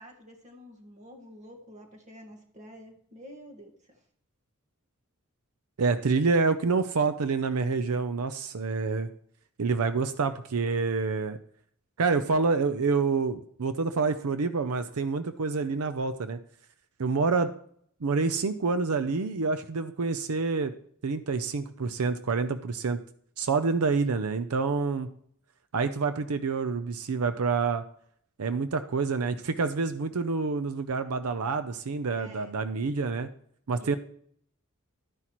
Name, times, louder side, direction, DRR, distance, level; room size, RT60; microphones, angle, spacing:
voice 1, 0.0-4.0 32.1-32.6 33.8-34.0, equal, 35° right, 3 dB, 1.7 m, -49 dB
voice 2, 5.8-9.1 9.6-11.4 12.0-16.4 17.0-17.5 18.0-20.7 21.0-23.0 23.4-25.1 25.7-27.8 28.4-33.3 33.7-34.0, right 4 dB, 85° right, 11 dB, 0.6 m, -27 dB
12.5 x 9.7 x 3.1 m, 0.64 s
head